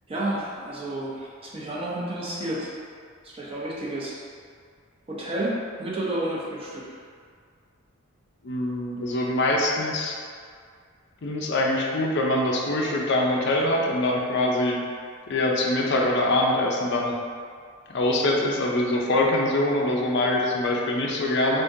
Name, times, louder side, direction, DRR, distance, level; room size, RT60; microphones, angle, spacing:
voice 1, 0.1-2.7 3.2-4.2 5.1-6.9, right 1 dB, 25° right, -5 dB, 0.6 m, -31 dB
voice 2, 8.4-10.2 11.2-14.8 15.3-17.1 17.9-21.6, left 1 dB, 55° left, -1 dB, 0.5 m, -24 dB
3.7 x 3.5 x 2.6 m, 2.1 s
head